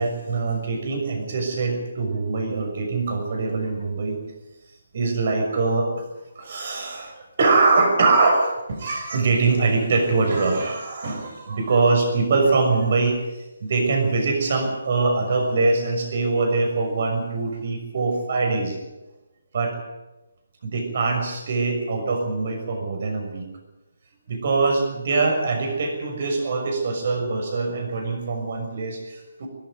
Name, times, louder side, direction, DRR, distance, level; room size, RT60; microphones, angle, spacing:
voice 1, 0.0-4.2 4.9-5.9 6.3-18.8 19.5-19.8 20.6-23.4 24.3-29.5, right 3 dB, 50° right, 3 dB, 6.3 m, -23 dB
20.5 x 13.5 x 9.6 m, 1.0 s
figure-of-eight pair, 145°, 0 cm